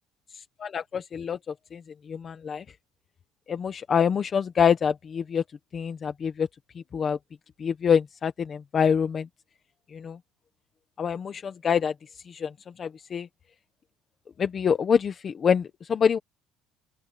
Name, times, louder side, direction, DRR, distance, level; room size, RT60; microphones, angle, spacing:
voice 1, 0.6-1.4 1.7-1.8 2.1-2.6 3.5-5.4 5.7-6.5 6.9-7.2 7.6-9.3 9.9-10.2 11.0-11.9 12.3-12.5 12.8-13.3 14.4-16.2, left 7 dB, 25° left, 1.2 m, -25 dB
open air
cardioid pair, 160°, 0 cm